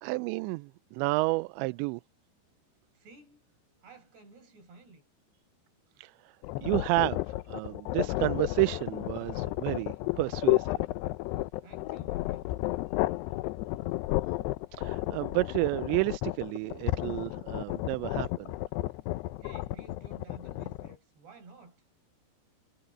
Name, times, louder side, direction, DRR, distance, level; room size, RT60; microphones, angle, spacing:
voice 1, 0.0-2.0 6.0-6.1 6.6-7.2 7.5-10.8 14.7-18.5, right 24 dB, 90° right, 2.8 m, -30 dB
voice 2, 2.9-3.5 3.8-5.0 11.6-12.5 19.4-21.8, right 3 dB, 70° right, 7.7 m, -53 dB
sound 1, 6.4-21.0, left 18 dB, 80° left, 2.6 m, -32 dB
omnidirectional pair, 5.1 m